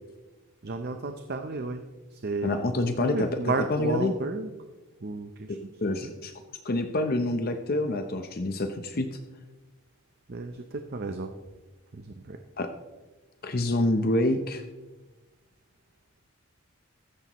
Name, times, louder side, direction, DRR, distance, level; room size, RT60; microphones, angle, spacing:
voice 1, 0.6-1.8 2.1-2.7 3.0-4.5 5.0-5.7 6.0-6.1 10.3-11.3 11.9-12.4, right 3 dB, 45° right, 6 dB, 0.6 m, -33 dB
voice 2, 2.4-3.3 3.7-4.1 5.5-6.3 6.6-9.1 12.6-12.7 13.4-14.6, left 1 dB, 40° left, 7 dB, 0.7 m, -27 dB
15.0 x 13.0 x 3.0 m, 1.2 s
head